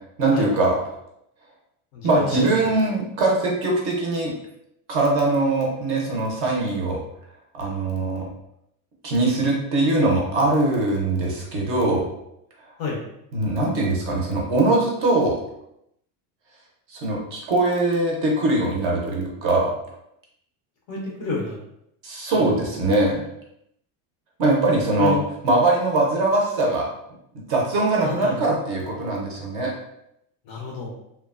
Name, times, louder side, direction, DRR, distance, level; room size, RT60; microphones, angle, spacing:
voice 1, 0.2-0.8 2.0-4.3 4.9-7.0 7.6-8.3 9.0-12.1 13.3-15.3 16.9-19.7 22.0-23.2 24.4-25.2 25.4-26.9 27.5-29.7, right 2 dB, 35° right, -2 dB, 0.5 m, -21 dB
voice 2, 1.9-2.5 12.8-13.0 20.9-21.6 22.3-22.7 25.0-25.2 28.0-28.5 30.5-30.9, left 4 dB, 35° left, -1 dB, 0.4 m, -29 dB
2.9 x 2.1 x 2.3 m, 0.78 s
cardioid pair, 175°, 40 cm